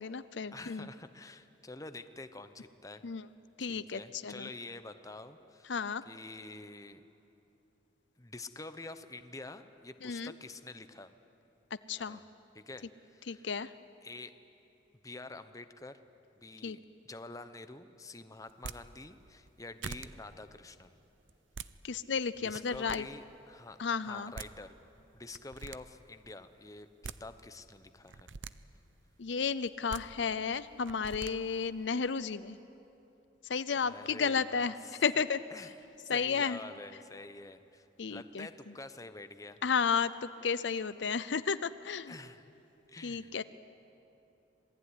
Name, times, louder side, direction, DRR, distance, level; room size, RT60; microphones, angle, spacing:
voice 1, 0.0-0.9 3.0-3.3 3.6-4.5 5.7-6.0 10.0-10.3 11.9-12.2 13.3-13.7 16.6-16.8 21.8-23.0 23.8-24.3 29.2-32.6 33.5-34.7 35.0-35.4 36.1-36.6 38.0-38.5 39.6-42.2 43.0-43.4, left 5 dB, 70° left, 14 dB, 0.6 m, -32 dB
voice 2, 0.5-3.0 3.6-5.7 6.1-7.0 8.2-11.1 12.0-12.2 12.5-13.5 14.0-14.3 15.0-16.0 16.4-16.8 17.1-21.0 22.4-24.7 25.1-28.3 33.8-35.2 35.5-35.7 36.0-39.6 42.1-42.5 42.9-43.4, left 2 dB, 20° left, 10 dB, 0.9 m, -47 dB
sound 1, 18.5-18.8 19.5-19.6 19.8-20.1 21.3-21.7 22.4-23.0 24.1-24.2 24.3-24.5 25.3-25.8 26.8-27.2 28.1-28.5 29.7-30.0 30.9-31.3, right 5 dB, 80° right, 0.7 m, -43 dB
26.5 x 20.0 x 9.8 m, 2.9 s
head